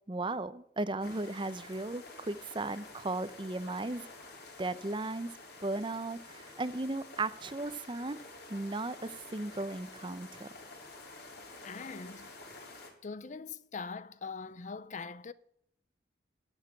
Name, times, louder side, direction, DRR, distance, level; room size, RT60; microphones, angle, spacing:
voice 1, 0.1-4.0 4.6-5.3 5.6-8.2 8.5-10.5, right 2 dB, 25° right, 0.6 m, -36 dB
sound 1, 1.0-12.9, left 2 dB, 60° left, 3.9 m, -50 dB
voice 2, 11.6-12.3 13.0-15.3, left 4 dB, 40° left, 0.5 m, -42 dB
11.5 x 8.1 x 8.6 m
head